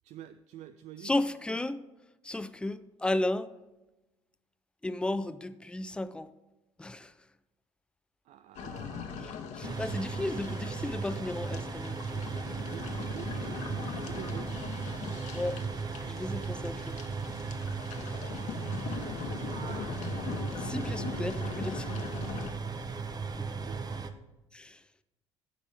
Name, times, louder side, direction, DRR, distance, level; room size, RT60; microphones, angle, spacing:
voice 1, 0.0-1.1 8.2-9.3 12.7-14.5 17.7-18.0 18.9-20.1 22.2-22.6 23.2-24.1, right 11 dB, 50° right, 0.4 m, -48 dB
voice 2, 1.0-1.8 2.2-3.5 4.8-6.3 6.8-7.1 9.2-12.0 15.3-15.6 16.0-17.0 20.6-21.9 23.3-23.7 24.5-24.8, left 2 dB, 5° left, 0.5 m, -34 dB
sound 1, 8.5-22.5, left 6 dB, 55° left, 1.1 m, -41 dB
sound 2, 9.6-24.1, right 5 dB, 25° right, 0.8 m, -36 dB
14.5 x 5.2 x 3.4 m
figure-of-eight pair, 55°, 15 cm